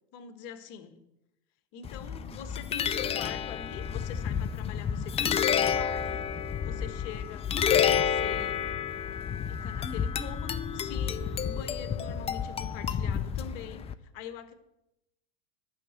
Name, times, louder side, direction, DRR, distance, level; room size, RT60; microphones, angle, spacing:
voice 1, 0.1-1.0 1.7-6.2 6.6-7.5 7.9-8.7 9.5-14.6, left 8 dB, 50° left, 11 dB, 1.3 m, -44 dB
sound 1, 1.8-13.9, left 8 dB, 15° left, 0.4 m, -30 dB
11.5 x 6.0 x 7.5 m, 0.88 s
figure-of-eight pair, 90°, 36 cm